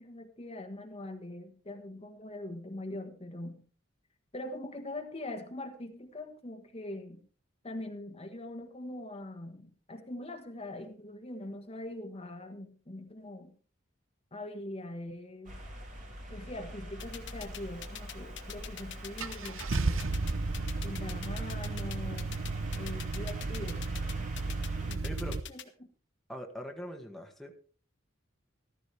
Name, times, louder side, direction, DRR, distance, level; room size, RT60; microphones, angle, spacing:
voice 1, 0.0-3.7 4.3-7.3 7.6-13.5 14.3-15.6 16.3-20.1 20.8-22.4 22.7-24.3 24.8-25.9, left 1 dB, 30° left, 5 dB, 1.5 m, -42 dB
sound 1, 15.4-24.9, equal, 40° right, 3.3 m, -44 dB
sound 2, 17.0-25.6, left 11 dB, 65° left, 1.2 m, -43 dB
Car / Engine starting, 18.5-18.6 19.2-25.4, right 3 dB, 80° right, 0.9 m, -34 dB
voice 2, 25.0-25.4 26.3-27.5, equal, ahead, 2 dB, 1.6 m, -42 dB
14.5 x 14.0 x 3.4 m, 0.40 s
head